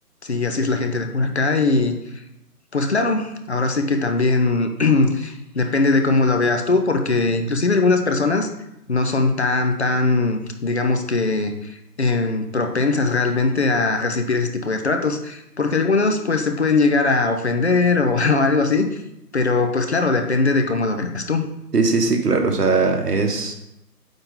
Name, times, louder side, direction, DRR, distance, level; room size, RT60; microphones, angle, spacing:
voice 1, 0.2-2.0 2.7-8.5 8.9-18.9 19.3-21.5, left 3 dB, 45° left, 6 dB, 0.7 m, -20 dB
voice 2, 21.7-23.5, right 4 dB, 75° right, 4 dB, 1.4 m, -19 dB
9.0 x 3.8 x 3.7 m, 0.86 s
figure-of-eight pair, 160°, 48 cm